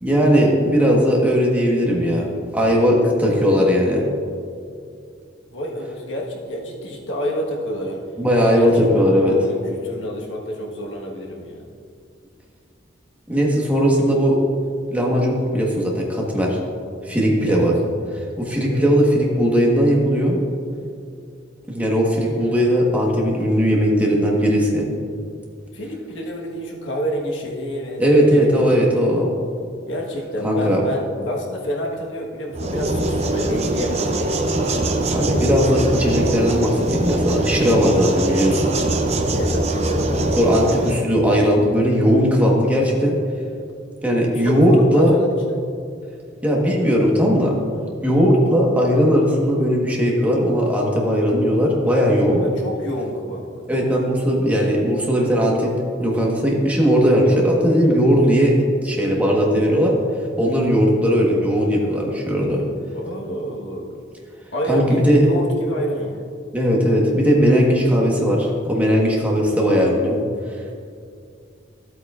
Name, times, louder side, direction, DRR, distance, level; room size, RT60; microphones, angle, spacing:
voice 1, 0.0-4.0 8.2-9.3 13.3-14.4 14.9-16.6 17.0-17.8 18.1-20.4 21.7-24.9 28.0-29.3 30.4-30.8 35.1-38.6 40.4-43.2 44.0-45.1 46.4-47.5 48.0-52.4 53.7-55.7 56.0-58.6 58.8-60.0 60.4-62.6 64.7-65.3 66.5-70.2 70.5-70.7, equal, 10° right, -2 dB, 1.2 m, -18 dB
voice 2, 5.5-8.0 8.4-8.7 9.0-11.6 17.5-17.7 18.7-18.9 22.2-22.6 25.7-28.7 29.9-34.7 39.4-40.2 44.4-45.6 52.4-53.7 57.7-57.9 62.9-63.9 64.5-66.3, equal, 85° left, -1 dB, 1.4 m, -29 dB
sound 1, 32.5-41.0, right 1 dB, 35° right, 0.6 m, -22 dB
13.5 x 8.3 x 2.4 m, 2.3 s
head